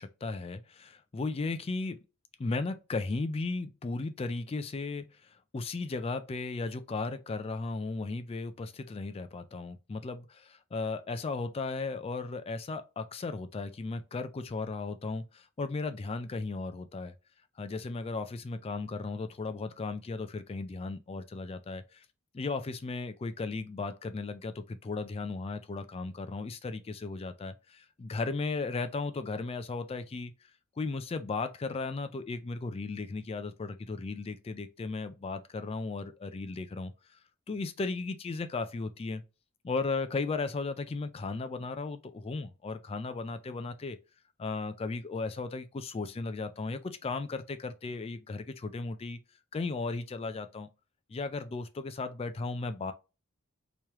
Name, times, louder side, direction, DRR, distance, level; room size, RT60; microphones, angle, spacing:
voice 1, 0.0-2.0 2.4-5.1 5.5-17.1 17.6-22.0 22.3-30.3 30.8-36.9 37.5-39.2 39.6-44.0 44.4-49.2 49.5-50.7 51.1-52.9, left 3 dB, 25° left, 0.3 m, -35 dB
3.2 x 3.0 x 3.4 m
head